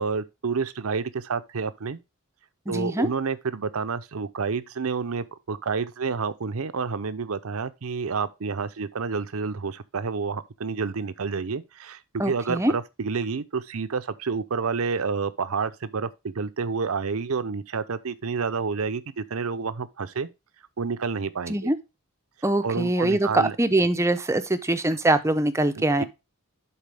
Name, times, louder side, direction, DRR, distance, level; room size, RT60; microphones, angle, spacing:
voice 1, 0.0-2.0 2.7-20.3 20.8-21.7 22.6-23.6 25.8-26.0, right 5 dB, 70° right, 0.6 m, -29 dB
voice 2, 2.7-3.1 12.2-12.7 21.5-21.8 22.4-26.0, right 1 dB, 15° right, 0.7 m, -23 dB
11.5 x 4.1 x 3.4 m
head